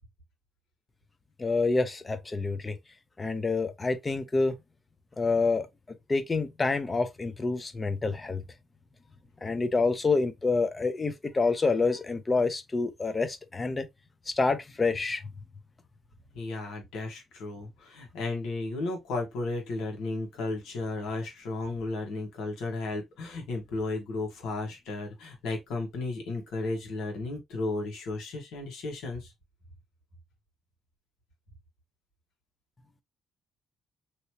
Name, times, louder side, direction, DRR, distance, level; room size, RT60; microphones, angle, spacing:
voice 1, 1.4-2.8 3.2-4.5 5.2-5.7 6.1-8.4 9.4-13.9 14.3-15.2, left 3 dB, 25° left, 0.7 m, -27 dB
voice 2, 16.3-29.3, left 2 dB, 85° left, 1.5 m, -34 dB
3.0 x 2.9 x 2.8 m
cardioid pair, 90°, 0 cm